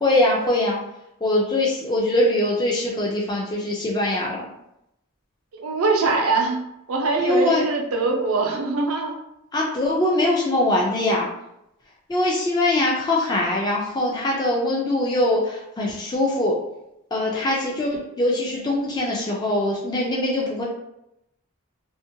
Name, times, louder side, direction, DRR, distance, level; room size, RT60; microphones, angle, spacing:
voice 1, 0.0-0.8 1.2-4.5 7.2-7.6 9.5-11.3 12.1-16.5 17.1-20.6, left 1 dB, 20° left, -4 dB, 0.4 m, -22 dB
voice 2, 5.5-6.6 6.9-9.1, right 3 dB, 85° right, 1 dB, 0.5 m, -22 dB
2.4 x 2.1 x 2.7 m, 0.82 s
head